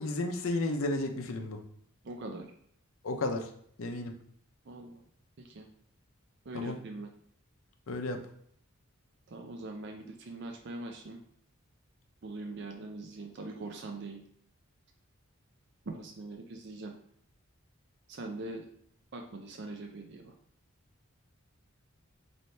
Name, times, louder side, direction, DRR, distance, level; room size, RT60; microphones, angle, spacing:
voice 1, 0.0-1.6 3.0-3.5 3.8-4.1 6.5-6.8 7.9-8.2, left 2 dB, 65° left, 4 dB, 0.6 m, -32 dB
voice 2, 2.0-2.5 4.7-5.0 5.4-5.7 6.5-7.1 9.3-11.2 12.2-14.2 15.9-16.9 18.1-18.7 19.1-20.3, right 2 dB, 50° right, 3 dB, 0.4 m, -42 dB
3.2 x 2.7 x 4.2 m, 0.66 s
head